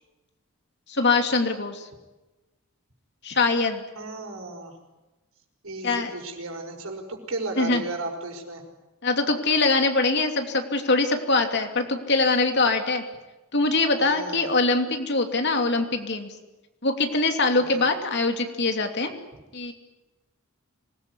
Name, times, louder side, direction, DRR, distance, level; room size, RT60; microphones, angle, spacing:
voice 1, 0.9-1.9 3.2-3.8 5.8-6.1 7.6-7.8 9.0-13.0 13.5-16.3 16.8-19.1 19.5-19.7, left 3 dB, 55° left, 5 dB, 2.9 m, -23 dB
voice 2, 3.9-4.7 5.6-8.6 14.0-14.5 17.5-17.8, right 2 dB, 80° right, 3 dB, 5.7 m, -34 dB
26.0 x 20.0 x 9.9 m, 1.1 s
head